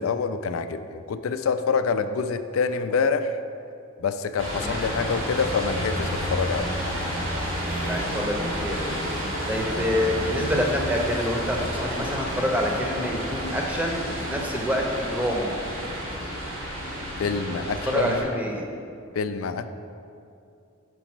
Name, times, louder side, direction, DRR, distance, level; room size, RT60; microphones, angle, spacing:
voice 1, 0.0-3.4 4.0-6.8 17.2-18.2 19.1-19.7, left 5 dB, 80° left, 10 dB, 0.4 m, -26 dB
sound 1, 4.4-18.2, equal, 70° right, 1.8 m, -30 dB
voice 2, 7.8-8.8 9.5-15.5 17.8-18.6, equal, 10° right, 0 dB, 0.8 m, -27 dB
6.1 x 5.0 x 6.0 m, 2.5 s
head